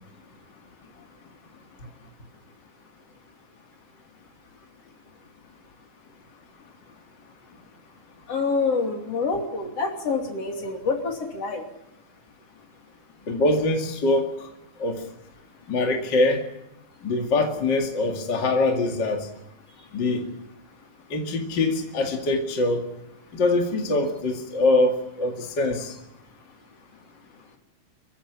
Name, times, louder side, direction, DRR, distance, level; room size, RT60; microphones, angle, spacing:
voice 1, 8.3-11.6, left 4 dB, 55° left, 3 dB, 3.8 m, -26 dB
voice 2, 13.3-14.5 14.8-15.0 15.7-16.4 17.0-19.3 19.9-20.3 21.1-22.8 23.3-25.9, left 2 dB, 40° left, 2 dB, 2.6 m, -23 dB
25.5 x 15.0 x 9.9 m, 0.88 s
omnidirectional pair, 3.5 m